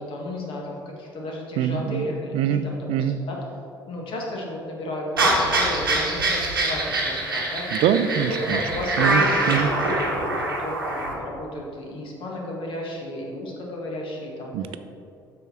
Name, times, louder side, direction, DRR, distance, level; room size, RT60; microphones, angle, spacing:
voice 1, 0.0-3.4 3.8-7.7 8.3-14.5, left 1 dB, 50° left, -1 dB, 1.7 m, -33 dB
voice 2, 1.6-2.1 2.3-3.2 7.7-8.6 9.0-9.7 14.5-14.8, right 9 dB, 55° right, 11 dB, 0.5 m, -24 dB
sound 1, 5.2-11.1, right 2 dB, 80° right, 1.0 m, -24 dB
7.6 x 6.2 x 4.4 m, 2.6 s
figure-of-eight pair, 55°, 11 cm